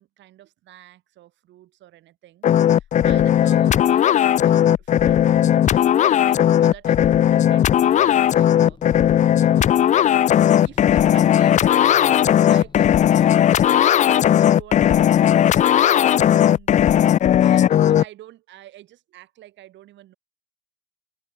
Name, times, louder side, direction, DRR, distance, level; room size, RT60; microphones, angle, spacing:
voice 1, 0.0-9.1 9.3-10.3 10.6-17.0 17.4-20.1, right 14 dB, 75° right, 5.3 m, -46 dB
sound 1, 2.4-18.0, left 10 dB, 40° left, 0.4 m, -16 dB
sound 2, 6.9-13.8, left 4 dB, 25° left, 6.4 m, -48 dB
cardioid pair, 105°, 19 cm